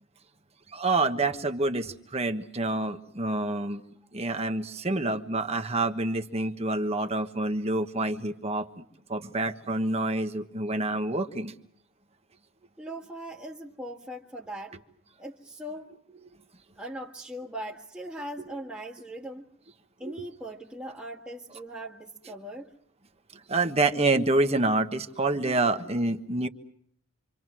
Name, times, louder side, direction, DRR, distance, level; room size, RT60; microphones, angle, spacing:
voice 1, 0.7-3.8 4.1-11.5 20.0-20.1 23.5-26.5, right 2 dB, 30° right, 7 dB, 1.4 m, -27 dB
voice 2, 12.8-14.8 15.2-15.9 16.8-19.5 20.0-22.7, right 1 dB, 5° right, -5 dB, 1.8 m, -40 dB
27.5 x 26.0 x 6.2 m, 0.66 s
head